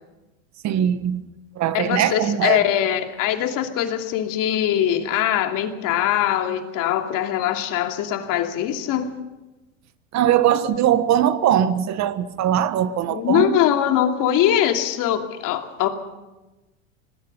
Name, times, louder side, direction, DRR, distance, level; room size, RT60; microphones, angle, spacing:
voice 1, 0.6-2.7 10.1-13.6, right 10 dB, 40° right, 1.5 m, -21 dB
voice 2, 1.7-9.1 13.1-15.9, left 11 dB, 50° left, 2.7 m, -22 dB
26.5 x 19.5 x 5.5 m
supercardioid pair, 110°, 41 cm